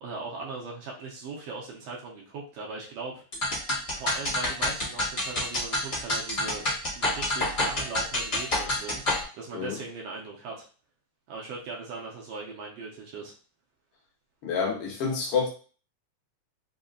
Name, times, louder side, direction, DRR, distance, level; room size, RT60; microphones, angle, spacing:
voice 1, 0.0-3.2 3.9-6.6 6.9-10.7 11.3-13.3, right 4 dB, 75° right, -2 dB, 1.6 m, -39 dB
sound 1, 3.3-9.2, left 1 dB, 35° left, 1.1 m, -28 dB
voice 2, 14.4-15.5, left 5 dB, 60° left, -2 dB, 1.7 m, -28 dB
4.9 x 2.8 x 2.6 m, 0.39 s
omnidirectional pair, 3.5 m